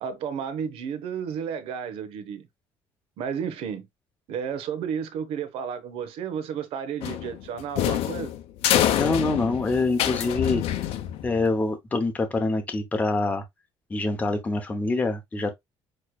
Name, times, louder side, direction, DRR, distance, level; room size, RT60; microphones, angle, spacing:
voice 1, 0.0-2.5 3.2-3.9 4.3-8.3, right 7 dB, 65° right, 1.0 m, -32 dB
sound 1, 7.0-11.5, left 11 dB, 75° left, 0.8 m, -26 dB
voice 2, 8.9-10.6 11.2-13.4 13.9-15.5, left 3 dB, 15° left, 0.8 m, -25 dB
6.3 x 3.1 x 2.3 m
cardioid pair, 180°, 11 cm